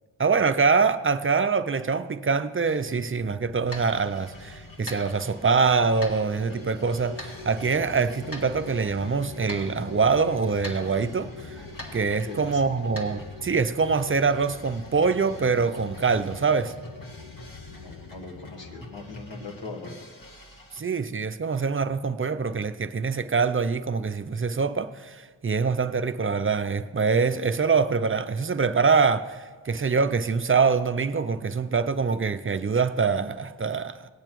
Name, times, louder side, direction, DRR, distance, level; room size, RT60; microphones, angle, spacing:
voice 1, 0.2-11.6 11.9-16.7 20.7-34.0, right 5 dB, 30° right, 0.4 m, -24 dB
sound 1, 2.6-13.3, left 1 dB, 30° left, 1.7 m, -45 dB
sound 2, 2.9-19.6, left 4 dB, 70° left, 0.8 m, -44 dB
sound 3, 3.7-20.8, equal, 50° left, 1.6 m, -47 dB
voice 2, 12.2-12.6 17.7-20.1, left 3 dB, 85° left, 1.4 m, -40 dB
18.5 x 8.8 x 3.0 m
wide cardioid pair, 90°, 43 cm